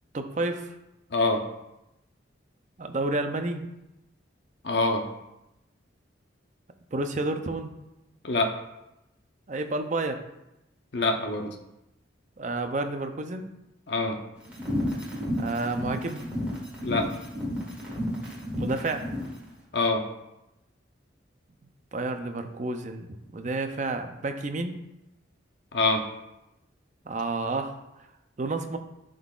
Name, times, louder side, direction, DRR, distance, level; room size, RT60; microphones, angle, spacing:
voice 1, 0.1-0.7 2.8-3.7 6.9-7.7 9.5-10.2 12.4-13.5 15.4-16.2 18.6-19.1 21.9-24.8 27.1-27.8 28.4-28.8, right 2 dB, 40° right, 6 dB, 0.5 m, -30 dB
voice 2, 1.1-1.4 4.6-5.1 8.2-8.5 10.9-11.5 13.9-14.2 16.8-17.1 19.7-20.0 25.7-26.1, left 2 dB, 60° left, 4 dB, 0.7 m, -25 dB
sound 1, 14.5-19.3, equal, 5° right, 1.7 m, -32 dB
11.5 x 3.8 x 2.4 m, 0.91 s
head